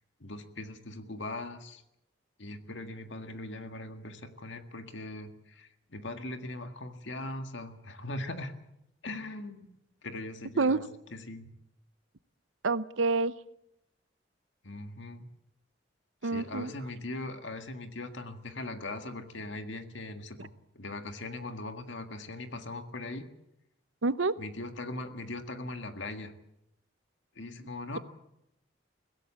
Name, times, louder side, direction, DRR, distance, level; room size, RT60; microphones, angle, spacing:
voice 1, 0.2-1.8 2.4-8.5 9.0-10.8 11.1-11.5 14.6-15.3 16.2-23.3 24.4-26.3 27.4-28.0, left 2 dB, 70° left, 7 dB, 1.9 m, -40 dB
voice 2, 12.6-13.3 16.2-16.7 24.0-24.4, right 3 dB, 85° right, 15 dB, 0.8 m, -27 dB
22.5 x 16.5 x 8.5 m, 0.82 s
head